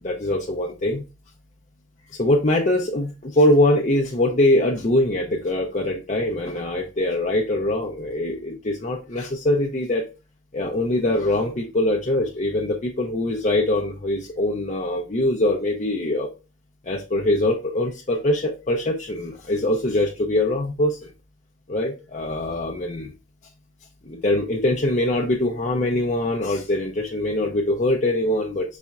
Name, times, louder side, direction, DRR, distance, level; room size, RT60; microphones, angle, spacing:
voice 1, 0.0-1.0 2.1-10.0 10.5-16.3 16.8-21.1 21.7-23.1 24.0-28.8, left 1 dB, 35° left, -1 dB, 0.6 m, -23 dB
5.5 x 4.1 x 2.3 m, 0.30 s
head